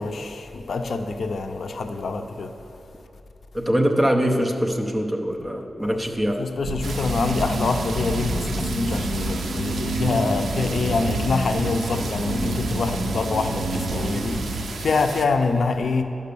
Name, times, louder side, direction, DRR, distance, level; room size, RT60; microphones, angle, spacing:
voice 1, 0.0-2.5 5.8-6.0 6.4-16.0, left 3 dB, 60° left, 6 dB, 0.5 m, -25 dB
voice 2, 3.5-6.4, equal, 10° right, 2 dB, 0.6 m, -23 dB
sound 1, 6.6-14.6, right 1 dB, 55° right, 0.9 m, -28 dB
sound 2, 6.8-15.3, right 4 dB, 70° right, 0.5 m, -35 dB
11.5 x 5.3 x 6.8 m, 2.8 s
wide cardioid pair, 175°, 0 cm